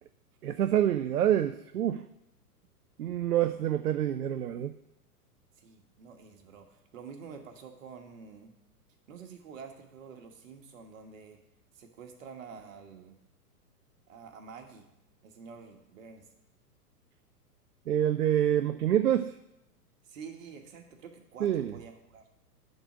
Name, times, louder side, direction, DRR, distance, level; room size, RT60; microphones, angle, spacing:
voice 1, 0.4-2.0 3.0-4.7 17.9-19.3 21.4-21.7, right 11 dB, 70° right, 11 dB, 0.5 m, -27 dB
voice 2, 5.6-8.5 9.1-11.4 11.7-13.2 14.1-14.9 15.2-16.3 20.0-22.2, right 6 dB, 50° right, 4 dB, 1.5 m, -48 dB
9.9 x 4.0 x 7.1 m, 0.88 s
figure-of-eight pair, 100°, 48 cm